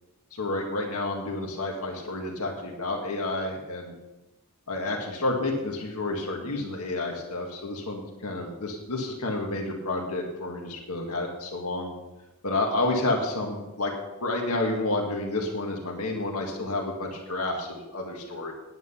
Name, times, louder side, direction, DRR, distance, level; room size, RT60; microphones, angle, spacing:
voice 1, 0.4-3.9 4.7-11.9 12.4-13.9 14.2-18.5, left 2 dB, 80° left, 0 dB, 1.9 m, -30 dB
9.7 x 9.3 x 5.7 m, 1.0 s
head